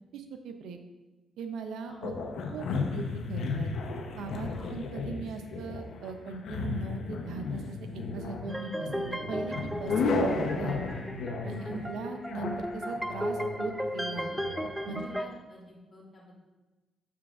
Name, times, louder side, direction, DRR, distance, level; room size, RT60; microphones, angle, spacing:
voice 1, 0.1-0.8 1.4-2.1 2.5-3.7 4.2-7.8 8.1-10.8 11.4-14.3 14.9-15.0, right 5 dB, 80° right, 6 dB, 0.7 m, -39 dB
sound 1, 2.0-14.7, left 3 dB, 70° left, 0.8 m, -34 dB
sound 2, 8.5-15.3, equal, 5° right, 0.4 m, -35 dB
voice 2, 14.8-16.3, left 1 dB, 25° left, -6 dB, 2.0 m, -49 dB
7.2 x 6.2 x 2.5 m, 1.2 s
cardioid pair, 90°, 0 cm